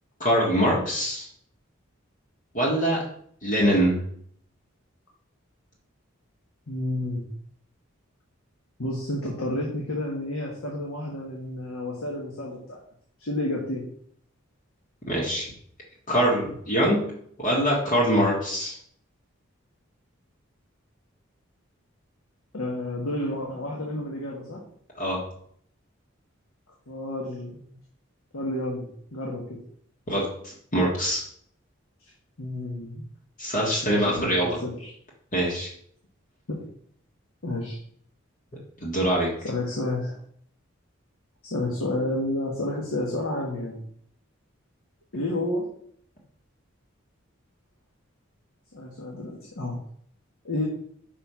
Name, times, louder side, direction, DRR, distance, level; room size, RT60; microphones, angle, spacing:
voice 1, 0.2-1.3 2.5-3.0 3.4-4.0 15.1-15.5 16.1-17.0 17.4-18.7 25.0-25.2 30.1-31.2 33.4-34.5 35.3-35.7 38.8-39.3, equal, 40° left, -4 dB, 1.6 m, -23 dB
voice 2, 6.7-7.3 8.8-12.8 13.2-13.9 22.5-24.6 26.9-27.7 28.3-29.6 32.4-33.0 33.8-34.9 36.5-36.6 37.4-37.8 39.4-40.1 41.4-43.8 45.1-45.7 48.7-49.8 50.4-50.6, left 1 dB, 85° left, -2 dB, 1.4 m, -30 dB
5.5 x 4.7 x 5.6 m, 0.64 s
head